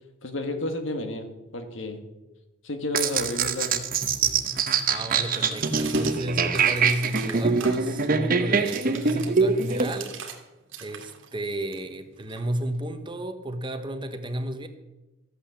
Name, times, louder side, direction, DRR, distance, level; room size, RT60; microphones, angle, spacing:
voice 1, 0.2-1.3 1.5-2.0 2.6-3.8, left 2 dB, 65° left, 6 dB, 1.7 m, -31 dB
sound 1, 2.9-9.9, right 5 dB, 45° right, 1.0 m, -24 dB
sound 2, 3.8-10.4 10.7-12.9, right 7 dB, 70° right, 2.2 m, -42 dB
voice 2, 4.9-10.2 10.8-14.7, right 1 dB, 25° right, 8 dB, 1.0 m, -32 dB
14.0 x 8.8 x 7.2 m, 1.1 s
head